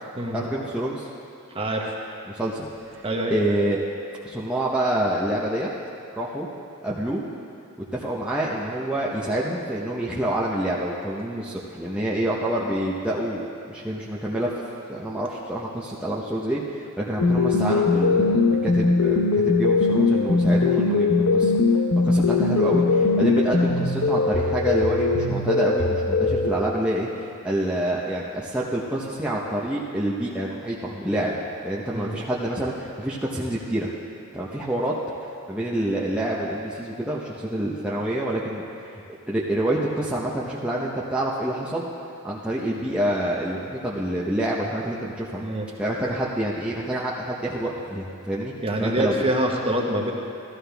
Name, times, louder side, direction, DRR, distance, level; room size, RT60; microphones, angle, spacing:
voice 1, 0.3-1.1 2.3-3.0 3.3-3.8 4.2-5.7 6.2-6.5 6.8-7.2 7.9-14.5 14.9-21.5 22.0-31.4 31.6-33.9 34.3-34.9 35.5-38.6 39.3-41.9 42.2-45.4 45.8-48.5 48.8-49.2, right 1 dB, 5° right, -6 dB, 0.9 m, -27 dB
voice 2, 1.5-2.0 3.0-3.3 31.9-32.1 45.4-45.7 48.6-50.1, right 1 dB, 25° right, -1 dB, 1.3 m, -25 dB
sound 1, 17.2-26.5, left 3 dB, 90° left, 0.9 m, -20 dB
15.0 x 13.0 x 3.5 m, 2.5 s
head